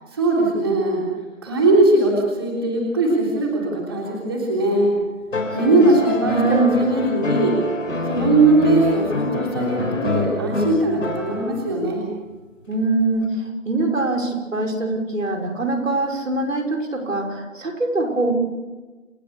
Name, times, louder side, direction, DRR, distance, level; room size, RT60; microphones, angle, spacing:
voice 1, 0.1-1.0 1.4-4.9 5.5-7.6 8.0-12.1, right 2 dB, 20° right, -3 dB, 3.4 m, -20 dB
sound 1, 5.3-11.8 13.2-13.3, left 2 dB, 75° left, 5.1 m, -26 dB
voice 2, 6.2-6.9 12.7-18.3, right 2 dB, 75° right, 3 dB, 5.9 m, -23 dB
29.0 x 16.5 x 6.9 m, 1.2 s
figure-of-eight pair, 180°, 39 cm